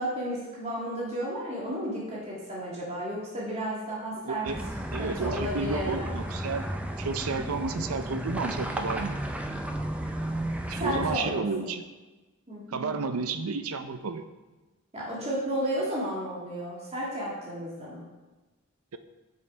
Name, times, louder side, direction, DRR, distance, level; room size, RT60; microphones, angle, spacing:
voice 1, 0.0-4.5 5.0-6.1 10.8-11.5 12.5-12.9 14.9-18.0, equal, 30° right, -5 dB, 1.8 m, -33 dB
voice 2, 4.2-4.6 4.9-6.7 7.0-9.2 10.7-11.8 12.7-14.2, right 4 dB, 85° right, 10 dB, 0.6 m, -31 dB
sound 1, 4.4-11.2, right 1 dB, 5° right, 0.4 m, -33 dB
6.8 x 5.6 x 4.5 m, 1.2 s
head